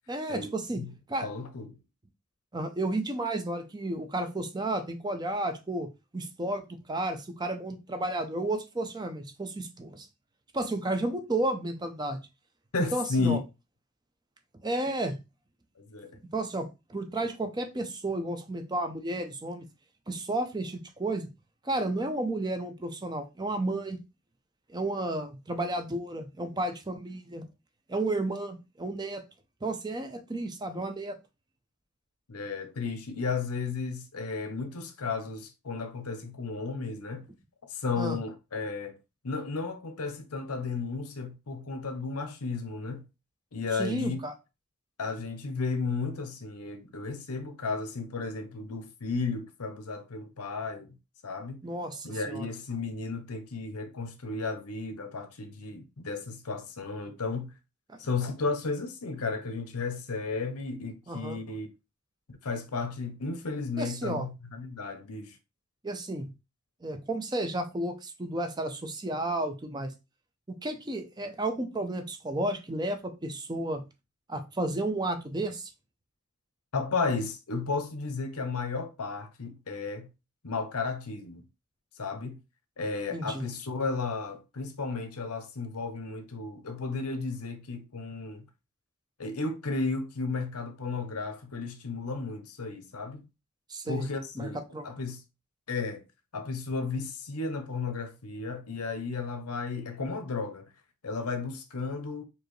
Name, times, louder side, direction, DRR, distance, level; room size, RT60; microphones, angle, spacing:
voice 1, 0.1-0.8 1.1-1.3 2.5-10.1 10.5-12.2 12.8-13.4 14.6-15.2 16.3-19.6 20.1-21.3 21.6-24.0 24.7-27.5 27.9-29.2 29.6-31.2 38.0-38.2 43.7-44.3 51.6-52.5 57.9-58.0 61.1-61.4 63.8-64.3 65.8-66.3 66.8-69.9 70.6-73.8 74.3-75.7 83.1-83.5 93.7-94.1 94.4-94.8, right 2 dB, 20° right, 0.5 m, -32 dB
voice 2, 1.2-1.8 12.7-13.4 15.8-16.2 32.3-37.3 37.6-39.0 39.2-43.1 43.5-44.2 45.0-50.9 51.2-51.6 52.0-57.5 58.0-61.7 62.3-65.4 76.7-80.1 80.4-81.4 82.0-82.4 82.8-88.4 89.2-93.3 93.9-95.2 95.7-96.0 96.3-100.7 101.0-102.3, left 4 dB, 90° left, 0.8 m, -33 dB
4.5 x 2.8 x 3.1 m
head